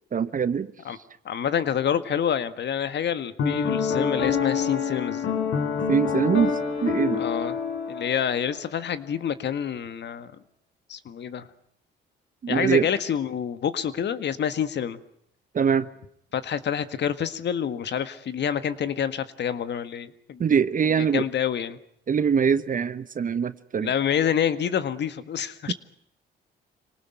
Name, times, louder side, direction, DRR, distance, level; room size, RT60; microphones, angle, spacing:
voice 1, 0.1-0.7 5.9-6.5 6.8-7.2 12.4-12.9 15.5-15.9 20.4-21.3 22.1-23.9 25.7-25.8, right 7 dB, 45° right, 1.0 m, -23 dB
voice 2, 1.3-5.4 7.1-7.6 7.9-10.3 10.9-11.5 12.5-15.0 16.3-20.4 20.8-21.8 23.8-25.7, left 8 dB, 60° left, 1.8 m, -27 dB
Piano, 3.4-8.7, left 6 dB, 75° left, 4.1 m, -27 dB
26.5 x 19.0 x 9.2 m
cardioid pair, 90°, 20 cm